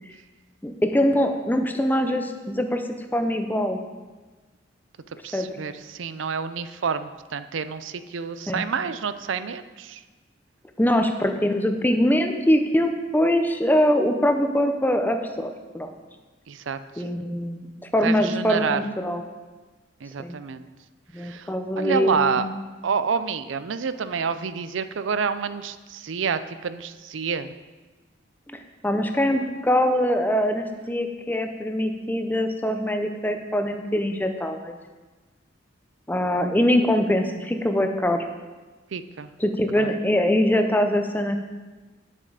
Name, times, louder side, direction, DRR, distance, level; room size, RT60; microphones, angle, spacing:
voice 1, 0.6-2.8 3.1-3.8 5.3-5.5 8.5-8.7 10.8-15.9 17.0-19.2 20.2-20.3 21.1-22.5 28.5-34.7 36.1-38.3 39.4-41.4, equal, 10° left, 5 dB, 0.7 m, -23 dB
voice 2, 5.2-10.0 16.5-17.0 18.0-18.8 20.0-20.7 21.2-22.5 22.8-27.5 38.9-39.3 39.8-39.9, right 6 dB, 80° right, 12 dB, 0.5 m, -28 dB
9.2 x 7.2 x 4.9 m, 1.3 s
head